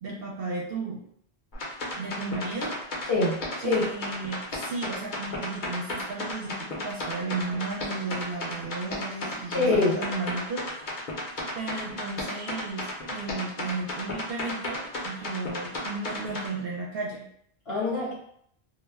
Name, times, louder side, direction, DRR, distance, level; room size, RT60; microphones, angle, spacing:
voice 1, 0.0-1.0 2.0-2.7 3.6-11.1 11.6-17.2, right 3 dB, 70° right, -2 dB, 0.7 m, -34 dB
sound 1, 1.5-16.5, left 2 dB, 55° left, 0.8 m, -33 dB
voice 2, 3.1-3.8 9.5-10.0 17.7-18.1, left 2 dB, 75° left, -6 dB, 1.1 m, -24 dB
2.2 x 2.1 x 3.4 m, 0.67 s
omnidirectional pair, 1.1 m